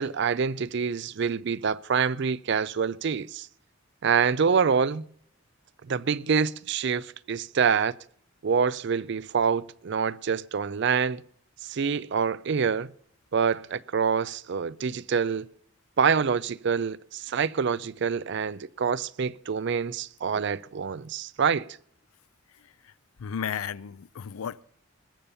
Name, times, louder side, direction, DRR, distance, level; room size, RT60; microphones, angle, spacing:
voice 1, 0.0-3.5 4.0-5.0 5.9-7.9 8.4-11.2 11.6-12.9 13.3-15.5 16.0-21.7, right 6 dB, 55° right, 0.4 m, -26 dB
voice 2, 23.2-24.6, left 8 dB, 80° left, 0.5 m, -33 dB
20.0 x 7.1 x 5.5 m
head